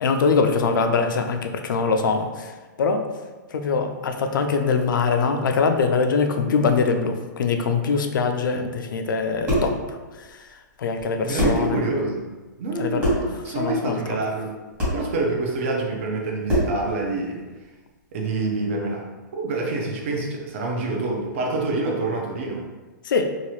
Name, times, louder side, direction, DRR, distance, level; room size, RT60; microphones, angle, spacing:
voice 1, 0.0-2.5 2.8-3.1 3.5-10.4 10.8-11.8 12.8-13.1 13.4-14.2 23.0-23.4, left 4 dB, 85° left, 5 dB, 0.4 m, -23 dB
sound 1, 9.2-9.8 11.0-11.1 11.4-11.7 13.0-13.3 14.8-15.0 16.5-16.8, equal, 15° right, 1.1 m, -23 dB
voice 2, 11.2-12.3 12.6-14.5 14.9-17.4 18.1-19.0 19.3-22.6, right 2 dB, 40° right, 0 dB, 0.5 m, -26 dB
2.9 x 2.4 x 3.0 m, 1.3 s
hypercardioid pair, 165°, 10 cm